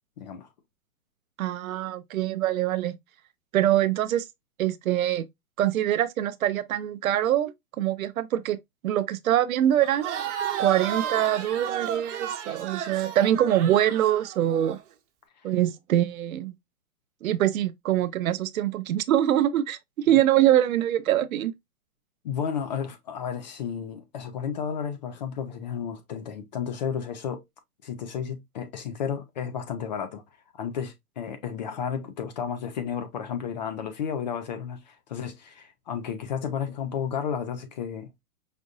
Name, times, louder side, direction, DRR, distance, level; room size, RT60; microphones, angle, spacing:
voice 1, 0.2-0.5 22.2-27.4 27.8-30.2 30.5-38.1, left 7 dB, 30° left, 0.4 m, -32 dB
voice 2, 1.4-3.0 3.5-4.3 4.6-5.3 5.6-8.6 8.8-10.1 10.6-14.8 15.4-16.5 17.2-21.5, right 12 dB, 65° right, 0.6 m, -24 dB
Crowd, 9.8-14.8, right 9 dB, 50° right, 1.1 m, -32 dB
5.1 x 2.6 x 2.4 m
hypercardioid pair, 130°, 45 cm